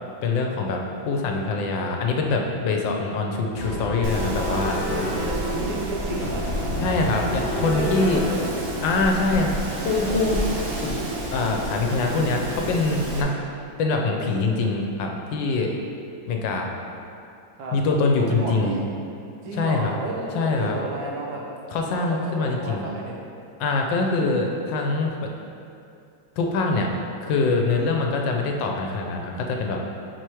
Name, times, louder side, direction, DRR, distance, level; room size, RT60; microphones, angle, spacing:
voice 1, 0.2-4.8 6.8-8.2 8.8-10.5 10.8-11.0 11.3-13.3 13.8-15.7 16.3-16.7 17.7-18.8 19.5-20.0 20.3-20.8 21.7-22.9 23.6-25.3 26.4-26.9 27.2-29.8, left 3 dB, 75° left, 1 dB, 1.3 m, -24 dB
sound 1, 3.5-9.5, left 1 dB, 40° left, 0.9 m, -32 dB
Wind, 4.0-13.2, right 1 dB, 55° right, 0.9 m, -29 dB
voice 2, 4.9-6.4 7.6-8.4 17.6-17.8 18.2-18.8 19.4-21.4 21.9-23.2, right 2 dB, 85° right, -3 dB, 1.7 m, -32 dB
4.7 x 4.5 x 4.5 m, 2.6 s
omnidirectional pair, 2.1 m